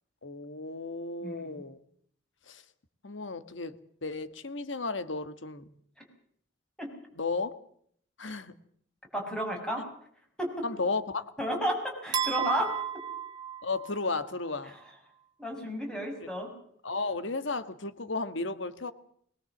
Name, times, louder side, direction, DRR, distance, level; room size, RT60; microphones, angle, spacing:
voice 1, 0.2-1.8 2.5-2.6 3.0-3.7 4.0-5.7 7.2-7.5 8.2-8.5 10.6-11.3 13.6-14.7 16.8-18.9, left 3 dB, 85° left, 12 dB, 1.6 m, -34 dB
voice 2, 1.2-1.6 6.8-6.9 9.1-9.8 10.4-10.7 11.4-12.7 14.6-14.8 15.4-16.5, equal, 5° left, 1 dB, 5.7 m, -32 dB
sound 1, 12.1-14.3, right 9 dB, 25° right, 3.6 m, -33 dB
22.0 x 20.0 x 7.3 m, 0.65 s
head